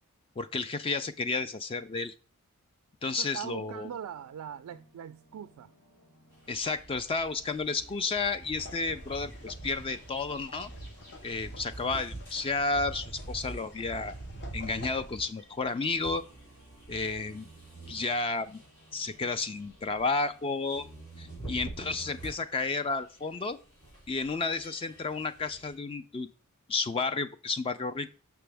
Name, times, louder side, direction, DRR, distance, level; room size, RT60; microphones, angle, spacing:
voice 1, 0.4-2.1 3.0-3.9 6.5-10.7 11.2-14.1 14.5-16.2 16.9-17.5 17.9-18.6 18.9-20.9 21.2-23.6 24.1-26.3 26.7-28.1, left 3 dB, 25° left, 0.3 m, -32 dB
voice 2, 3.2-5.7, right 8 dB, 85° right, 0.3 m, -41 dB
sound 1, 3.4-20.7, right 1 dB, 70° left, 2.6 m, -63 dB
sound 2, 6.3-25.7, right 2 dB, 85° left, 3.9 m, -46 dB
sound 3, 8.6-15.1, left 3 dB, 50° left, 0.7 m, -51 dB
6.1 x 5.9 x 3.3 m
head